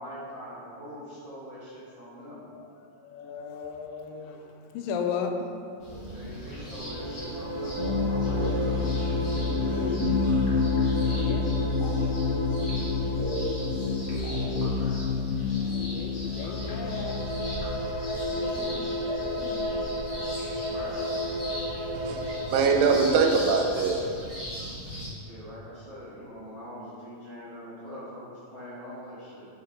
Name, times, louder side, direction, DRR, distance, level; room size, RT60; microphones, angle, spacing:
voice 1, 0.0-2.4 6.0-8.9 9.3-10.4 10.9-11.4 14.4-15.0 18.0-18.8 20.6-21.0 25.2-29.5, equal, 40° right, -13 dB, 0.9 m, -44 dB
voice 2, 2.3-5.5 9.7-10.3 11.2-11.5 15.7-17.3 18.3-19.7, left 6 dB, 85° left, 5 dB, 2.2 m, -36 dB
sound 1, 5.8-25.1, equal, 45° left, 1.7 m, -39 dB
sound 2, 6.7-15.3 16.3-23.7, equal, 55° right, 1.4 m, -34 dB
sound 3, 7.8-17.7, left 4 dB, 60° left, 2.4 m, -28 dB
voice 3, 21.9-24.0 24.3-24.7, right 5 dB, 85° right, 3 dB, 2.3 m, -24 dB
5.8 x 5.6 x 3.9 m, 2.4 s
omnidirectional pair, 3.9 m